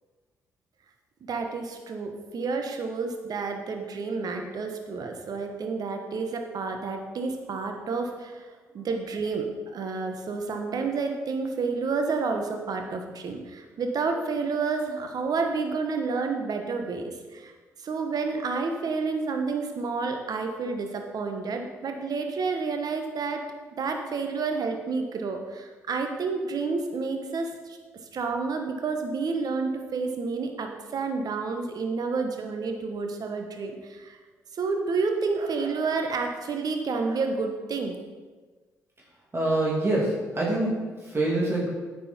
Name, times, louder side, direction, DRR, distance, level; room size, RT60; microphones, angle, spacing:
voice 1, 1.3-8.5 8.7-9.4 9.7-17.5 17.8-23.4 23.8-27.8 28.1-34.2 34.5-37.9, right 4 dB, 55° right, 4 dB, 1.2 m, -30 dB
voice 2, 39.3-41.7, right 2 dB, 30° right, -4 dB, 2.5 m, -25 dB
9.3 x 6.2 x 4.3 m, 1.4 s
hypercardioid pair, 45°, 8 cm